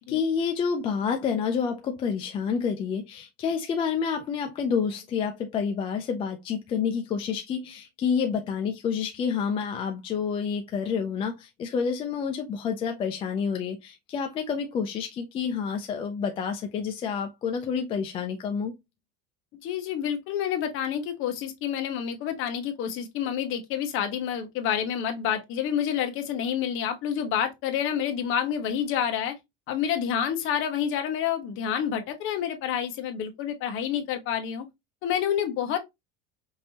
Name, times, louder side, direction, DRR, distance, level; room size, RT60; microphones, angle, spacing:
voice 1, 0.0-18.8, left 6 dB, 20° left, 0.3 m, -29 dB
voice 2, 19.6-29.3 29.7-34.6 35.0-35.8, left 9 dB, 40° left, 1.0 m, -28 dB
5.3 x 2.6 x 2.7 m
cardioid pair, 165°, 31 cm